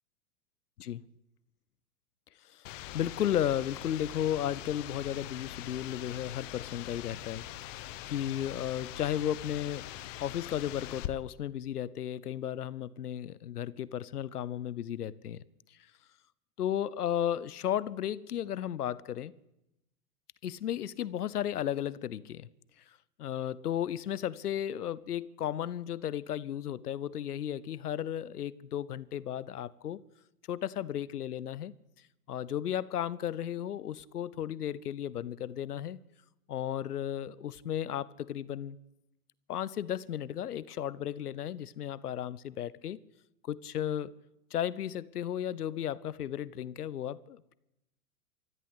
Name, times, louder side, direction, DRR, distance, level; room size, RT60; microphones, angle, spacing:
voice 1, 2.5-9.9 10.2-15.4 16.6-19.3 20.4-22.5 23.2-30.0 30.5-31.7 32.3-36.0 36.5-38.8 39.5-43.0 43.5-44.1 44.5-47.5, left 10 dB, 80° left, 0.9 m, -34 dB
sound 1, 2.6-11.1, left 14 dB, 55° left, 1.3 m, -43 dB
23.5 x 14.0 x 8.3 m
hypercardioid pair, 100°, 45 cm